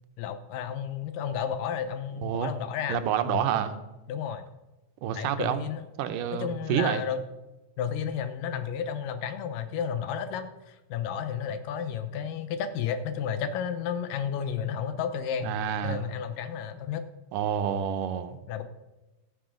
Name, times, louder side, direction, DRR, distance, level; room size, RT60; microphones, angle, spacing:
voice 1, 0.2-3.4 4.1-4.5 5.1-5.8 6.3-7.2 7.8-15.5 15.8-17.0 18.5-18.6, left 8 dB, 85° left, 10 dB, 2.6 m, -32 dB
voice 2, 2.9-3.8 5.0-5.6 6.0-7.0 15.4-16.1 17.3-18.4, right 9 dB, 85° right, 9 dB, 2.4 m, -28 dB
13.0 x 9.5 x 5.0 m, 1.1 s
omnidirectional pair, 3.8 m